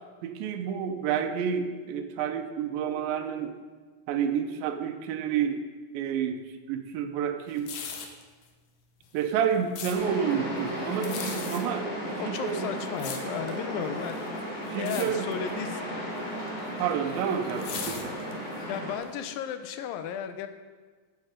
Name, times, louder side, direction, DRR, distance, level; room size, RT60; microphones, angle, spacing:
voice 1, 0.2-3.6 4.1-5.6 5.9-6.4 6.7-7.7 9.1-12.7 14.7-15.3 16.8-18.1, right 8 dB, 85° right, 6 dB, 2.5 m, -29 dB
sound 1, 7.5-8.2 9.0-10.0 10.9-11.6 12.4-13.6 14.0-14.4 14.7-15.1 15.3-15.6 16.5-18.6 19.0-19.1, left 6 dB, 65° left, 2.0 m, -38 dB
sound 2, 9.9-19.0, equal, 20° left, 2.7 m, -35 dB
voice 2, 12.2-14.2 14.6-15.8 18.7-20.5, left 8 dB, 80° left, 9 dB, 2.5 m, -34 dB
11.5 x 7.7 x 5.1 m, 1.4 s
omnidirectional pair, 4.0 m